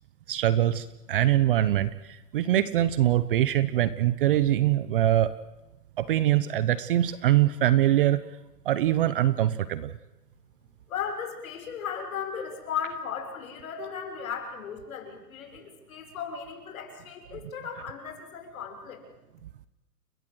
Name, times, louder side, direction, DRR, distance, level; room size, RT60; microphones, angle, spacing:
voice 1, 0.3-5.3 6.0-8.2 8.6-9.9, right 13 dB, 35° right, 16 dB, 0.9 m, -23 dB
voice 2, 10.9-19.0, left 7 dB, 55° left, 5 dB, 6.2 m, -36 dB
29.5 x 20.0 x 7.9 m, 0.98 s
hypercardioid pair, 150°, 48 cm